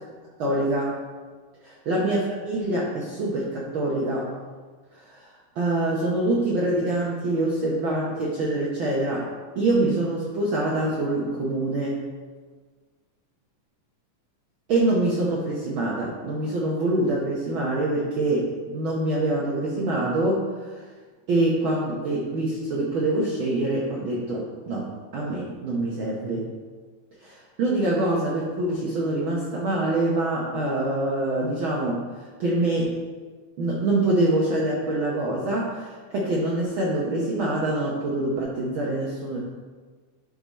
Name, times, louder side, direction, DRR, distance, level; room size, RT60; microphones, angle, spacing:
voice 1, 0.4-1.0 1.6-4.3 4.9-5.3 5.6-9.3 9.6-12.0 14.7-20.9 21.3-26.5 27.2-32.9 33.6-39.4, right 2 dB, 80° right, -4 dB, 1.1 m, -25 dB
11.0 x 3.8 x 4.1 m, 1.4 s
omnidirectional pair, 3.6 m